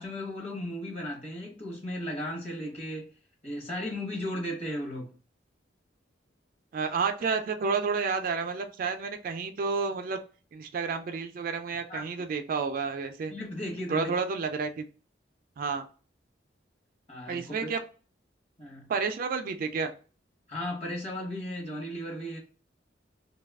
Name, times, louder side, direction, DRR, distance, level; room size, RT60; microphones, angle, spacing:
voice 1, 0.0-3.1 3.4-5.1 11.9-12.0 13.3-14.1 17.1-17.7 18.6-18.9 20.5-22.4, left 1 dB, 35° left, 0.9 m, -35 dB
voice 2, 6.7-10.2 10.5-13.3 13.9-14.8 15.6-15.8 17.3-17.8 18.9-19.9, right 5 dB, 50° right, 0.3 m, -30 dB
2.6 x 2.3 x 3.4 m
head